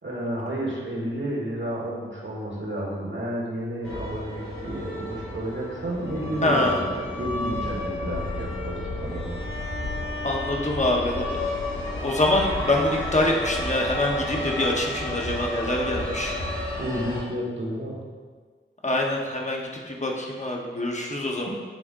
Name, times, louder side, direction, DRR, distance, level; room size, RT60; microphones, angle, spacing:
voice 1, 0.0-9.4 16.8-18.0, right 1 dB, 60° right, -4 dB, 2.0 m, -31 dB
sound 1, 3.8-17.2, left 1 dB, 85° left, 1.8 m, -31 dB
voice 2, 6.4-6.8 10.2-11.6 12.0-16.4 18.8-21.5, left 1 dB, 35° left, -1 dB, 1.3 m, -25 dB
9.2 x 3.5 x 3.8 m, 1.5 s
cardioid pair, 40°, 21 cm